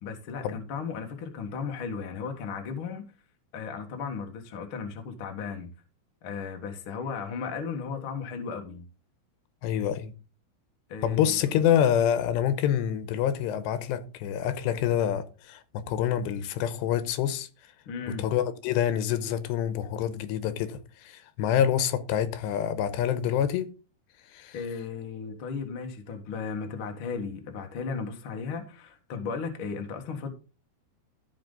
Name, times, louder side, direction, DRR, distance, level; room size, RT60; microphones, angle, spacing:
voice 1, 0.0-3.0 3.5-5.7 6.2-8.8 10.9-11.3 17.8-18.2 24.5-30.3, left 5 dB, 70° left, 1.2 m, -35 dB
voice 2, 9.6-10.1 11.0-17.5 18.1-23.7 24.3-24.6, left 10 dB, 85° left, 3.0 m, -27 dB
15.5 x 5.2 x 3.9 m
omnidirectional pair, 5.0 m